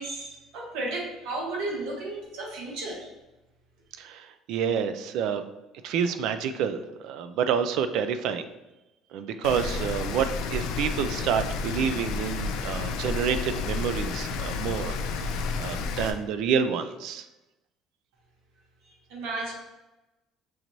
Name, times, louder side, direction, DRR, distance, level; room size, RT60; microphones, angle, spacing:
voice 1, 0.0-3.1 18.9-19.5, right 2 dB, 85° right, -2 dB, 1.0 m, -34 dB
voice 2, 4.0-5.4 5.8-8.4 9.1-14.9 15.2-17.3, right 7 dB, 55° right, 10 dB, 0.3 m, -28 dB
Rain, 9.4-16.1, left 4 dB, 75° left, 0.4 m, -31 dB
6.1 x 3.0 x 2.6 m, 1.0 s
cardioid pair, 180°, 0 cm